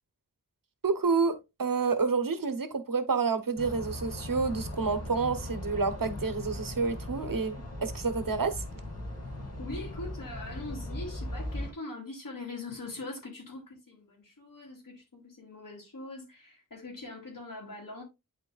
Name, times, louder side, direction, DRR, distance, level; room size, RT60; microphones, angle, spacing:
voice 1, 0.8-8.6, right 4 dB, 90° right, 1.1 m, -29 dB
sound 1, 3.6-11.7, left 1 dB, 50° left, 2.3 m, -38 dB
voice 2, 9.6-18.0, left 2 dB, 75° left, 2.7 m, -42 dB
11.0 x 4.0 x 2.4 m
wide cardioid pair, 70°, 33 cm